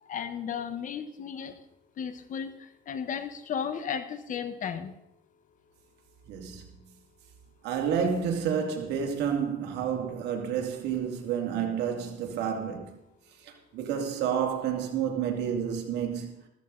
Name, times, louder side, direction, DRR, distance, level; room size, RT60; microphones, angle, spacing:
voice 1, 0.0-1.5 2.0-4.9, left 7 dB, 50° left, 1.3 m, -34 dB
voice 2, 6.3-6.6 7.6-13.0 13.4-16.4, right 7 dB, 85° right, 2.5 m, -30 dB
14.0 x 14.0 x 4.0 m
cardioid pair, 110°, 17 cm